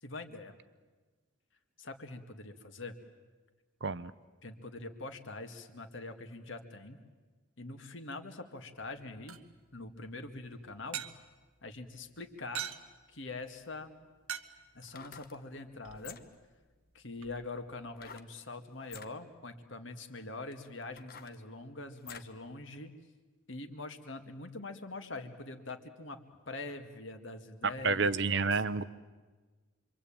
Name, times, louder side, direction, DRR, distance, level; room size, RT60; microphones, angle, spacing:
voice 1, 0.0-0.6 1.8-3.0 4.4-7.0 7.6-9.4 9.7-11.0 11.6-12.7 13.1-13.9 14.7-16.2 16.9-22.9 23.5-28.4, left 2 dB, 65° left, 6 dB, 2.1 m, -44 dB
voice 2, 3.8-4.1 27.8-28.8, right 4 dB, 55° right, 15 dB, 0.7 m, -29 dB
sound 1, 8.8-18.1, right 8 dB, 90° right, 1.3 m, -48 dB
sound 2, 14.8-15.4 15.9-16.5 18.0-18.3 18.8-19.1 19.9-20.0 20.5-22.4 22.8-22.9, left 7 dB, 45° left, 1.1 m, -50 dB
27.0 x 24.0 x 8.8 m, 1.3 s
head